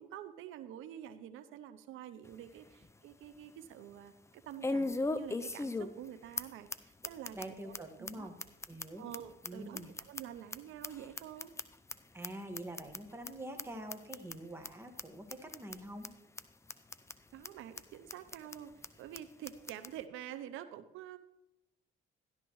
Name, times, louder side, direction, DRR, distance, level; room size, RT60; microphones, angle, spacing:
voice 1, 0.0-7.4 7.6-8.3 9.0-11.5 17.3-21.2, right 10 dB, 90° right, 12 dB, 0.6 m, -48 dB
sound 1, 2.3-2.4 2.8-2.9 4.6-6.1 6.4-6.5 6.7-6.8 7.0-7.5 7.7-7.8 8.1-8.2 8.4-10.6 10.8-11.9 12.2-12.3 12.6-13.0 13.3-13.4 13.6-13.7 13.9-14.4 14.6-14.7 15.0-15.1 15.3-15.8 16.0-16.1 16.4-16.5 16.7-17.1 17.4-17.5 17.8-17.9 18.1-18.6 18.8-18.9 19.1-19.2 19.5-19.9, left 2 dB, 15° left, 0.5 m, -37 dB
voice 2, 7.3-8.3 8.7-9.1 9.4-9.9 12.1-16.1, right 1 dB, 10° right, 3 dB, 1.6 m, -45 dB
13.5 x 11.5 x 3.1 m, 0.87 s
cardioid pair, 90°, 20 cm